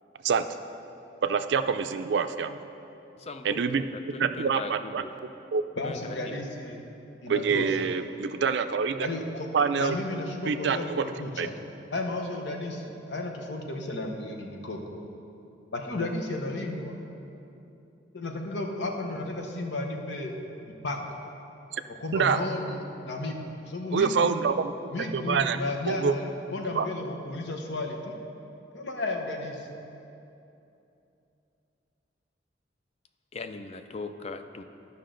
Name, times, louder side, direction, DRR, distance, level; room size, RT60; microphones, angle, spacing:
voice 1, 1.2-2.6 3.4-3.8 4.2-5.0 5.5-5.6 7.3-9.1 9.5-10.0 10.5-11.0 11.4-11.5 21.7-21.8 22.1-22.4 23.9-24.7 25.1-25.6 25.9-26.2 26.7-26.9, right 6 dB, 75° right, 10 dB, 0.4 m, -26 dB
voice 2, 3.2-5.1 5.8-6.0 6.3-6.4 33.3-34.6, left 3 dB, 35° left, 8 dB, 0.4 m, -39 dB
voice 3, 5.8-6.8 7.2-7.9 9.0-11.5 11.9-14.8 15.7-17.0 18.1-20.3 20.6-21.0 21.9-23.4 23.7-24.3 24.9-28.2 28.7-29.7, left 2 dB, 80° left, 2 dB, 0.9 m, -33 dB
13.0 x 5.7 x 3.8 m, 2.8 s
head